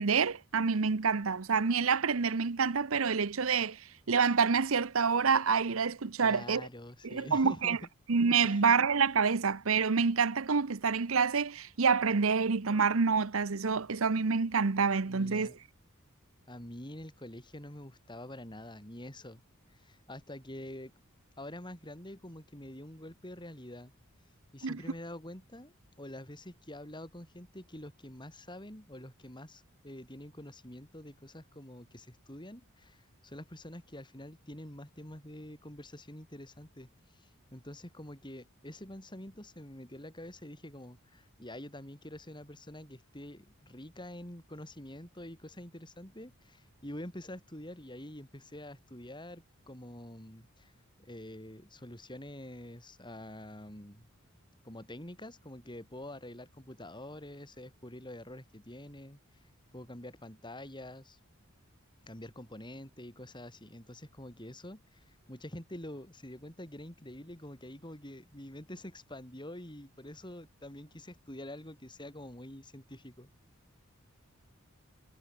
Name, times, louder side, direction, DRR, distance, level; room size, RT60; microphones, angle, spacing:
voice 1, 0.0-3.8 4.1-6.6 7.0-7.8 8.1-15.5 24.6-24.8, right 5 dB, 70° right, 0.8 m, -27 dB
voice 2, 6.2-7.8 8.4-8.7 15.1-15.6 16.5-19.4 19.7-20.9 21.4-23.9 24.5-50.7 51.0-54.1 54.6-59.2 59.7-61.2 62.0-73.3, left 1 dB, 20° left, 5.6 m, -46 dB
head